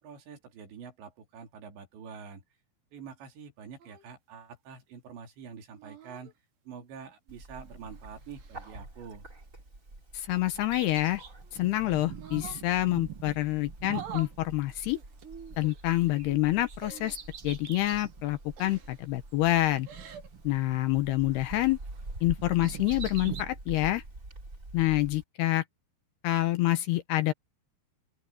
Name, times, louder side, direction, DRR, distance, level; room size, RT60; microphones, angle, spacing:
voice 1, 0.0-2.4 2.9-6.3 6.7-9.3, right 6 dB, 75° right, 5.5 m, -46 dB
sound 1, 3.8-4.1 5.7-6.3 7.6-8.8 10.8-11.6 12.1-12.7 13.8-14.4 15.6-15.8 16.8-17.1 18.6-19.0 19.7-20.3, right 7 dB, 90° right, 6.8 m, -46 dB
Bird, 7.3-25.2, right 2 dB, 15° right, 4.4 m, -46 dB
voice 2, 10.1-11.2 11.5-15.0 15.6-17.2 17.4-19.9 20.4-21.8 22.2-24.0 24.7-25.6 26.2-27.3, left 16 dB, 75° left, 2.7 m, -27 dB
Bird vocalization bird call bird song, 10.6-15.2 15.5-18.2 18.7-18.8 19.7-21.1 21.4-23.4, right 10 dB, 55° right, 1.5 m, -45 dB
open air
omnidirectional pair, 5.2 m